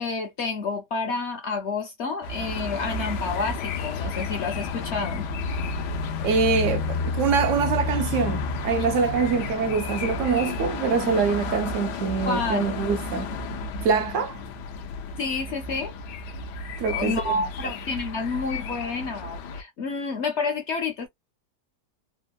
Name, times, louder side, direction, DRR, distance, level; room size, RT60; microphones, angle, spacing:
voice 1, 0.0-5.3 12.3-12.6 15.2-15.9 16.9-21.1, left 4 dB, 60° left, 0.7 m, -29 dB
sound 1, 2.2-19.6, left 4 dB, 85° left, 1.2 m, -31 dB
voice 2, 6.2-13.3 13.8-14.4 16.8-17.2, right 5 dB, 70° right, 0.7 m, -24 dB
3.5 x 2.0 x 2.2 m
omnidirectional pair, 1.7 m